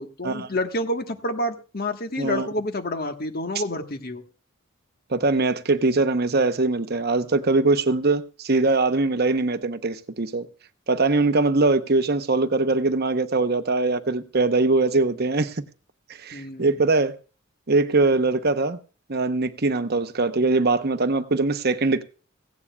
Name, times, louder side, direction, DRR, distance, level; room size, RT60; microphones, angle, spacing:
voice 1, 0.0-4.2 16.3-16.7, left 1 dB, 45° left, 1.4 m, -29 dB
voice 2, 5.1-10.5 10.9-15.6 16.2-17.1 17.7-18.8 19.1-22.0, right 3 dB, 50° right, 0.8 m, -22 dB
17.0 x 16.5 x 2.3 m
head